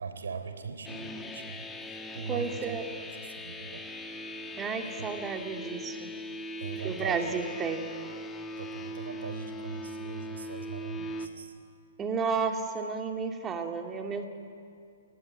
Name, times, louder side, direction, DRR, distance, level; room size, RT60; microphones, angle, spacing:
voice 1, 0.0-3.9 5.0-5.1 5.6-6.1 6.6-7.3 8.6-11.6, right 5 dB, 70° right, 7 dB, 3.6 m, -41 dB
sound 1, 0.8-11.3, left 1 dB, 10° left, 1.9 m, -40 dB
voice 2, 2.3-2.8 4.6-6.1 6.8-7.9 12.0-14.2, right 5 dB, 20° right, 4 dB, 2.7 m, -32 dB
29.5 x 18.0 x 9.7 m, 2.4 s
figure-of-eight pair, 120°, 0 cm